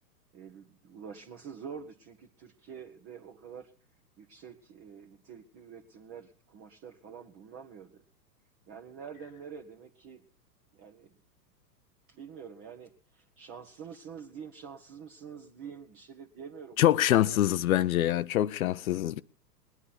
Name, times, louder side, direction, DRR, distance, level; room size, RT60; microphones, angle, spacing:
voice 1, 0.3-3.7 4.2-8.0 8.7-10.2 10.7-11.1 12.1-17.4, right 7 dB, 30° right, 1.3 m, -47 dB
voice 2, 16.8-19.2, left 13 dB, 60° left, 0.6 m, -25 dB
20.5 x 9.8 x 4.2 m
hypercardioid pair, 110°, 49 cm